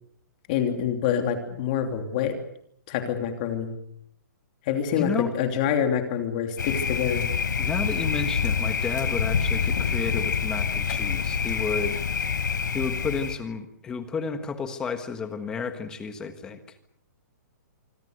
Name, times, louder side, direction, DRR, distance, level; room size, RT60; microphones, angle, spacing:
voice 1, 0.5-2.4 2.9-3.7 4.7-7.3, left 8 dB, 25° left, 5 dB, 3.0 m, -26 dB
voice 2, 4.9-5.3 7.6-12.0 12.7-16.6, left 5 dB, 5° left, 9 dB, 1.4 m, -31 dB
Thunder, 6.6-13.4, left 6 dB, 85° left, 4.1 m, -26 dB
26.0 x 24.5 x 6.6 m, 0.72 s
hypercardioid pair, 180°, 10 cm